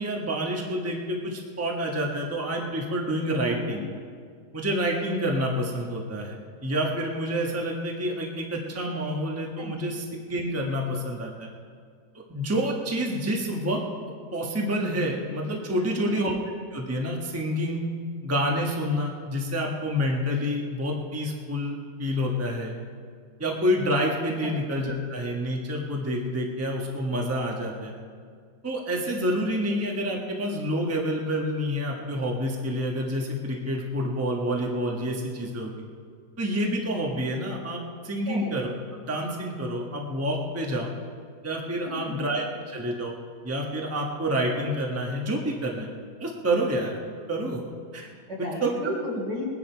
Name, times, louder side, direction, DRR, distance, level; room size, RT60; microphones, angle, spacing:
voice 1, 0.0-3.8 4.5-6.4 6.6-11.5 12.3-13.8 14.3-16.4 16.7-17.8 18.2-22.7 23.4-27.9 28.6-35.7 36.4-38.7 39.0-40.9 41.4-43.1 43.4-45.9 46.2-47.0 47.3-47.6 47.9-48.1 48.6-48.7, equal, 10° right, 0 dB, 1.2 m, -28 dB
voice 2, 3.4-3.8 9.6-9.8 16.0-16.2 24.4-24.5 38.3-38.5 41.8-42.2 48.3-49.5, left 1 dB, 75° right, -3 dB, 4.2 m, -34 dB
21.0 x 10.0 x 4.6 m, 2.1 s
omnidirectional pair, 1.8 m